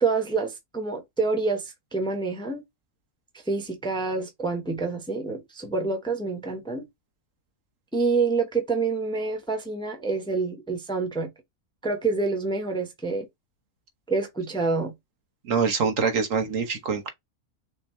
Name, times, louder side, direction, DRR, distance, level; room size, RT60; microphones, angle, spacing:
voice 1, 0.0-2.6 3.5-6.9 7.9-11.3 11.8-13.3 14.1-14.9, right 4 dB, 5° left, 0.9 m, -27 dB
voice 2, 15.5-17.1, right 5 dB, 65° right, 1.5 m, -24 dB
6.3 x 2.7 x 3.1 m
omnidirectional pair, 1.5 m